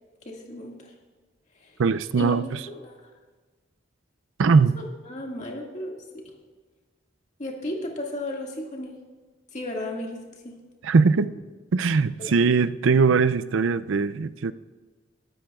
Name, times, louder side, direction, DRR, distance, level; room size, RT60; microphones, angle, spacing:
voice 1, 0.2-0.9 1.6-1.8 2.1-2.4 2.7-2.9 4.8-6.2 7.4-8.9 9.5-10.5 12.2-12.3, left 1 dB, 35° left, 0 dB, 2.0 m, -34 dB
voice 2, 1.8-2.6 4.4-4.8 10.8-11.3 11.7-14.5, right 4 dB, 80° right, 13 dB, 0.4 m, -21 dB
22.0 x 12.5 x 2.4 m, 1.3 s
head